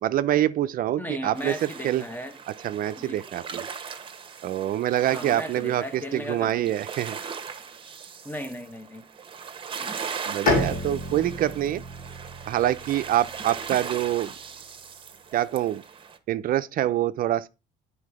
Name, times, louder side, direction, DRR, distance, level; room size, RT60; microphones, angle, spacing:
voice 1, 0.0-2.0 2.6-3.6 4.4-7.2 10.3-11.8 12.5-14.3 15.3-15.8 16.3-17.5, right 13 dB, 60° right, 0.5 m, -25 dB
voice 2, 1.0-2.4 3.0-3.3 5.0-6.7 8.2-9.0, equal, 10° left, 1.1 m, -36 dB
sound 1, 1.3-16.2, right 6 dB, 30° right, 1.1 m, -39 dB
Bowed string instrument, 10.5-14.1, left 2 dB, 55° left, 3.2 m, -30 dB
8.6 x 4.5 x 4.8 m
cardioid pair, 110°, 17 cm